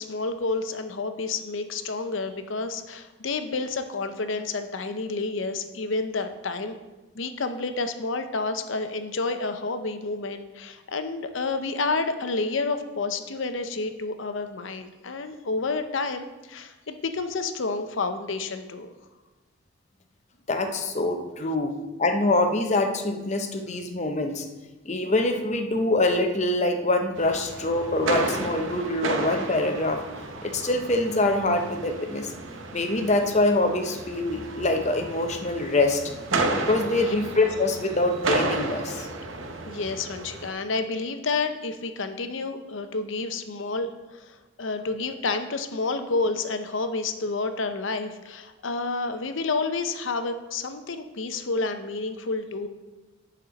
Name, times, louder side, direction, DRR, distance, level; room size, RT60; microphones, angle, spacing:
voice 1, 0.0-6.8 7.1-18.9 36.9-37.2 39.6-52.7, left 3 dB, 75° left, 8 dB, 0.7 m, -30 dB
voice 2, 20.5-21.7 22.0-24.4 24.8-30.0 30.4-32.3 32.7-36.0 36.6-39.1, left 2 dB, 35° left, 5 dB, 0.7 m, -24 dB
sound 1, 27.1-40.5, right 3 dB, 75° right, 0.8 m, -32 dB
10.5 x 4.3 x 5.1 m, 1.1 s
head